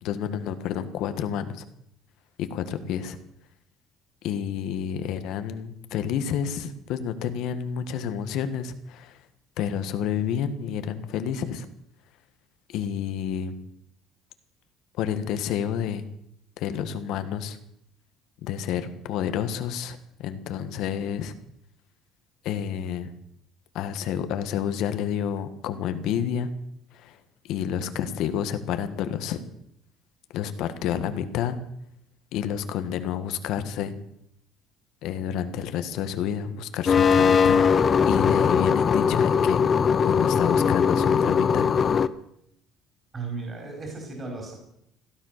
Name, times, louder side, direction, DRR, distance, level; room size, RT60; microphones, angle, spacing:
voice 1, 0.0-1.6 2.4-3.2 4.2-9.2 9.6-11.6 12.7-13.6 15.0-16.1 16.6-17.6 18.4-21.3 22.4-23.1 23.7-26.5 26.9-27.2 27.4-29.4 30.3-31.6 32.3-33.9 35.0-37.6 38.1-39.6 40.0-41.7, left 9 dB, 65° left, 10 dB, 1.5 m, -29 dB
sound 1, 36.9-42.1, left 6 dB, 30° left, 0.6 m, -20 dB
voice 2, 43.1-44.5, right 4 dB, 20° right, 1 dB, 4.5 m, -35 dB
16.5 x 12.5 x 6.6 m, 0.74 s
cardioid pair, 150°, 0 cm